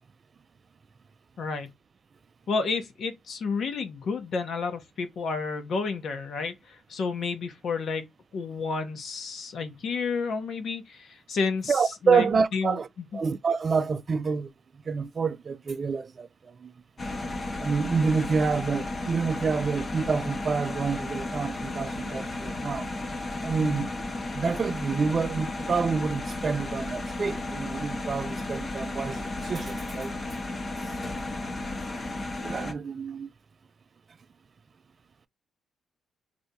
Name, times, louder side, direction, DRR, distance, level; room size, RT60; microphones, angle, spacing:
voice 1, 1.4-1.7 2.5-8.0 8.3-12.3 12.5-13.0 23.6-23.9, left 4 dB, 60° left, 0.9 m, -31 dB
voice 2, 11.7-12.9 13.1-14.5 14.9-16.7 17.6-22.9 23.4-23.9 24.3-30.1 30.9-31.0 32.4-33.3, right 5 dB, 40° right, 0.4 m, -28 dB
sound 1, 17.0-32.7, left 2 dB, 35° left, 0.7 m, -34 dB
3.4 x 2.6 x 2.8 m
cardioid pair, 90°, 0 cm